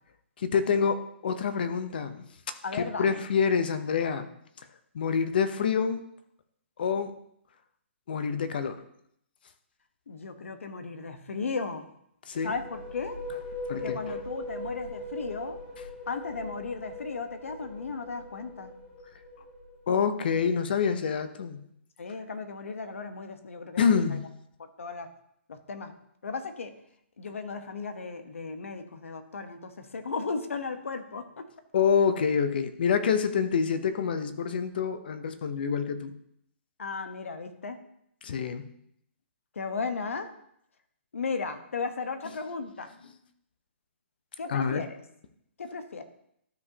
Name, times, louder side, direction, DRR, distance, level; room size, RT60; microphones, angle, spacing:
voice 1, 0.4-4.3 4.9-6.0 6.8-7.2 8.1-8.8 12.3-12.5 13.7-14.1 19.9-21.6 23.8-24.3 31.7-36.1 38.2-38.7 44.5-44.9, left 6 dB, 45° left, 10 dB, 0.7 m, -27 dB
voice 2, 2.6-3.2 10.1-11.8 12.4-13.2 13.7-15.6 16.1-18.7 22.0-24.2 24.8-25.1 25.5-25.9 26.2-26.7 27.2-31.5 36.8-37.8 39.5-40.3 41.1-42.9 44.4-45.0 45.6-46.0, left 4 dB, 90° left, 8 dB, 1.0 m, -35 dB
sound 1, 12.3-19.9, left 2 dB, 20° left, 1.4 m, -40 dB
12.5 x 5.0 x 2.8 m, 0.72 s
hypercardioid pair, 170°, 7 cm